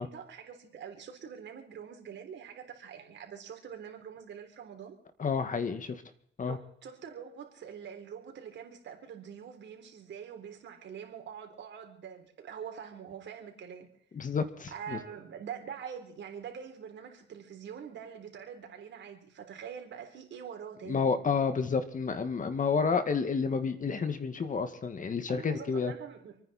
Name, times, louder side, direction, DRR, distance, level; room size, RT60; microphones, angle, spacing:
voice 1, 0.0-5.0 6.5-13.9 14.7-21.2 25.0-26.4, right 8 dB, 65° right, 4 dB, 3.9 m, -45 dB
voice 2, 5.2-6.0 6.4-6.6 14.1-15.0 20.9-25.9, left 5 dB, 40° left, 9 dB, 2.0 m, -30 dB
28.0 x 9.9 x 4.3 m, 0.67 s
cardioid pair, 90°, 20 cm